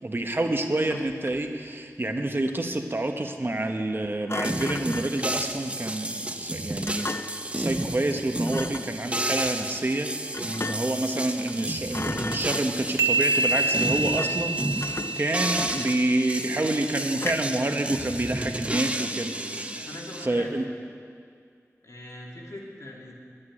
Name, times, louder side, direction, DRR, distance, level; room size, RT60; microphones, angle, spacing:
voice 1, 0.0-10.1 10.4-19.9 20.2-20.6, right 1 dB, 40° right, 4 dB, 1.1 m, -28 dB
Thump thud, 0.7-1.5 4.3-5.2 6.8-7.5 8.5-8.9 10.3-11.0 11.4-11.6 11.9-12.9 14.1-14.5 14.8-16.2 17.2-17.6, left 3 dB, 50° left, 0.6 m, -36 dB
sound 1, 4.4-20.3, right 1 dB, 20° right, 0.7 m, -32 dB
sound 2, 13.0-16.5, right 3 dB, 60° right, 0.5 m, -27 dB
voice 2, 19.8-20.6 21.8-23.1, left 1 dB, 70° left, -2 dB, 2.5 m, -42 dB
11.5 x 8.6 x 10.0 m, 2.2 s
wide cardioid pair, 65°, 6 cm